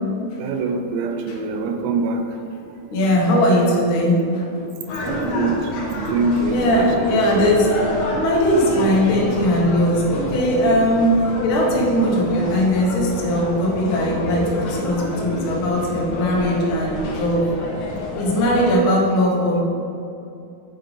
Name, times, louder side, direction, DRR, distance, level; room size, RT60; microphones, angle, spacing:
voice 1, 0.4-2.2 5.1-7.6, right 3 dB, 85° right, 6 dB, 2.4 m, -24 dB
voice 2, 2.9-4.7 6.5-17.5 18.1-19.6, equal, 80° left, -4 dB, 1.1 m, -19 dB
sound 1, 4.9-18.7, left 2 dB, 65° left, 2.2 m, -28 dB
7.8 x 3.6 x 5.1 m, 2.6 s
omnidirectional pair, 4.2 m